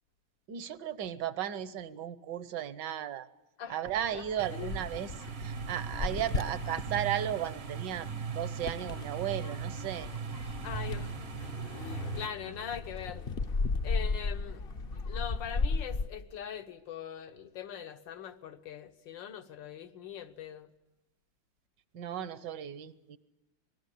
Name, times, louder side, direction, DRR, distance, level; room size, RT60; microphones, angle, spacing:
voice 1, 0.5-3.3 3.7-5.1 5.4-8.1 8.4-10.1 21.9-23.2, right 10 dB, 65° right, 1.7 m, -35 dB
sound 1, 3.9-16.1, left 3 dB, 40° left, 0.8 m, -36 dB
sound 2, 4.4-12.3, right 6 dB, 45° right, 1.0 m, -39 dB
voice 2, 10.6-13.2 13.6-14.6 15.1-20.7, left 8 dB, 70° left, 1.9 m, -42 dB
26.5 x 20.0 x 8.4 m
omnidirectional pair, 2.1 m